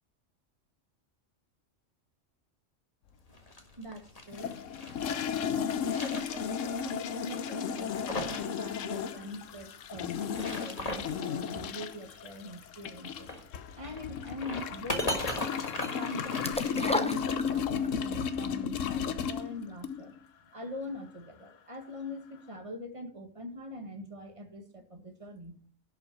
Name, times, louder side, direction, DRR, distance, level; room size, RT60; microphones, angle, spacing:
sound 1, 3.3-5.1 5.6-6.8 7.1-7.2 7.7-8.5 8.8-8.9 10.1-11.2 13.1-17.2, left 1 dB, 30° left, 1.7 m, -38 dB
voice 1, 3.8-4.6 5.1-13.3 13.7-15.1 15.9-20.1 20.5-25.6, left 1 dB, 25° right, 5 dB, 1.7 m, -43 dB
sound 2, 4.3-20.2, left 7 dB, 80° left, 1.2 m, -34 dB
sound 3, 16.4-18.0 18.3-18.4, left 1 dB, 5° left, 0.7 m, -32 dB
11.0 x 5.8 x 6.1 m, 0.43 s
omnidirectional pair, 1.3 m